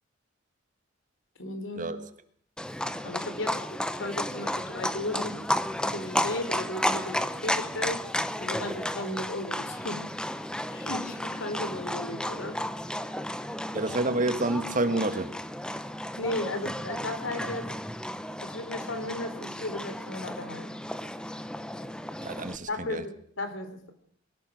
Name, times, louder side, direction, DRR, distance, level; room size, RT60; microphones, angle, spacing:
voice 1, 1.4-1.9 3.0-5.3 5.8-8.0 8.4-10.0 10.7-12.6 16.2-17.7 18.4-20.8 22.7-23.9, left 1 dB, 70° left, 3.6 m, -35 dB
Livestock farm animals working animals, 2.6-22.6, left 1 dB, 5° left, 0.9 m, -33 dB
voice 2, 13.7-15.3 22.2-23.0, right 2 dB, 40° right, 1.6 m, -28 dB
22.0 x 19.0 x 6.4 m
head